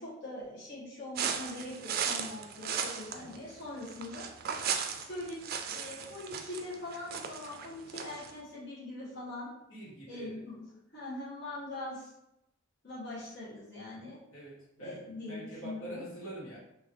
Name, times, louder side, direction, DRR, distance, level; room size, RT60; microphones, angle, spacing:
voice 1, 0.0-4.2 4.9-5.4 5.7-9.5 10.1-12.1 12.8-14.2 14.8-16.0, left 2 dB, 55° left, -9 dB, 1.3 m, -42 dB
sound 1, 1.1-8.3, right 7 dB, 45° right, 0.3 m, -36 dB
voice 2, 9.7-10.4 14.3-15.0 15.3-16.6, right 1 dB, 85° left, -7 dB, 1.5 m, -44 dB
3.6 x 2.7 x 3.3 m, 0.84 s
head